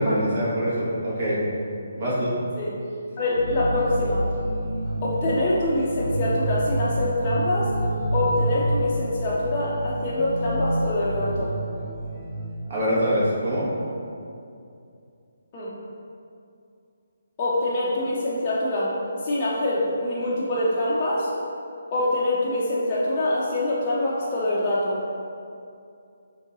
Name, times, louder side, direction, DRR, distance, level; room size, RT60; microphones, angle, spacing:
voice 1, 0.0-1.4 2.0-2.3 12.7-13.7, equal, 45° right, -9 dB, 1.5 m, -24 dB
voice 2, 3.2-4.3 5.0-7.7 8.1-11.6 15.5-15.7 17.4-18.9 19.2-21.3 21.9-25.0, left 1 dB, 30° left, -8 dB, 0.5 m, -25 dB
sound 1, 3.3-12.9, right 1 dB, 65° right, 0.9 m, -28 dB
5.1 x 2.7 x 2.6 m, 2.5 s
figure-of-eight pair, 155°, 0 cm